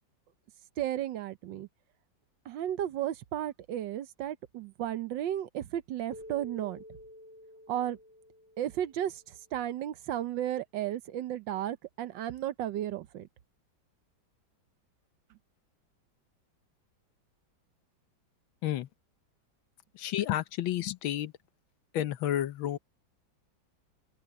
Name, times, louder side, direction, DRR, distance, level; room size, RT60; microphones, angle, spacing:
voice 1, 0.8-1.7 2.4-6.8 7.7-8.0 8.6-13.3, right 11 dB, 75° right, 1.4 m, -34 dB
Keyboard (musical), 6.1-9.3, left 1 dB, 20° left, 0.8 m, -50 dB
voice 2, 19.9-21.3 21.9-22.8, left 12 dB, 85° left, 1.6 m, -31 dB
open air
omnidirectional pair, 2.1 m